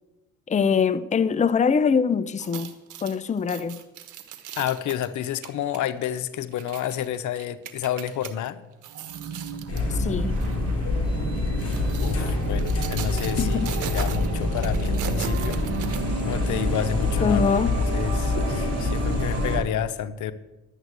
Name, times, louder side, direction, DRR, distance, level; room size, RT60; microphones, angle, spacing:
voice 1, 0.5-2.7 3.0-3.8 9.9-10.4 13.4-13.7 17.2-17.7, left 6 dB, 25° left, 0.6 m, -23 dB
sound 1, 2.3-8.3 8.7-9.9 10.4-10.6 11.4-16.5 16.9-17.0, right 9 dB, 80° right, 1.4 m, -39 dB
voice 2, 4.6-8.6 12.0-15.9 16.2-20.3, left 10 dB, 75° left, 0.8 m, -30 dB
sound 2, 8.9-19.6, right 5 dB, 55° right, 1.4 m, -33 dB
sound 3, 9.7-19.6, left 2 dB, 50° left, 4.7 m, -26 dB
12.0 x 8.4 x 8.1 m
cardioid pair, 90°, 30 cm